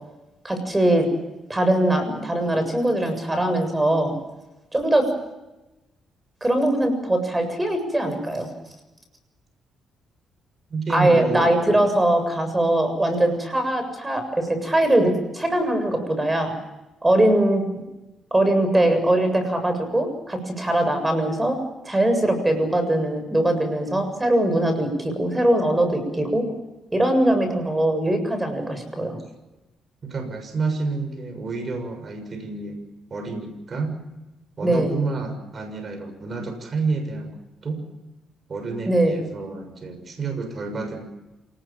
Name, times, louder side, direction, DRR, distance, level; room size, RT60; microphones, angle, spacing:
voice 1, 0.4-1.1 1.5-4.1 4.7-5.1 6.4-8.5 10.9-16.5 17.0-17.6 18.3-21.6 21.8-26.5 26.9-29.2 34.6-35.0 38.9-39.2, right 1 dB, 15° right, 7 dB, 7.3 m, -21 dB
voice 2, 10.7-11.6 30.0-32.8 33.1-33.9 34.6-37.4 37.6-37.8 38.5-41.0, right 3 dB, 40° right, 5 dB, 6.6 m, -29 dB
28.0 x 19.5 x 7.4 m, 1.0 s
cardioid pair, 90°, 0 cm